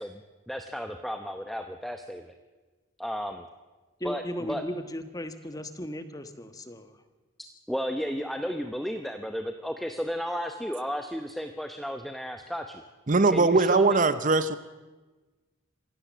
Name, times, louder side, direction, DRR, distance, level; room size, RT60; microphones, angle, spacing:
voice 1, 0.0-2.4 3.0-3.5 4.0-4.6 7.7-12.8 13.3-14.0, equal, ahead, 6 dB, 0.8 m, -33 dB
voice 2, 4.0-7.0, equal, 15° left, 9 dB, 1.3 m, -36 dB
voice 3, 13.1-14.5, right 3 dB, 35° right, 13 dB, 0.7 m, -21 dB
26.0 x 17.0 x 7.4 m, 1.2 s
head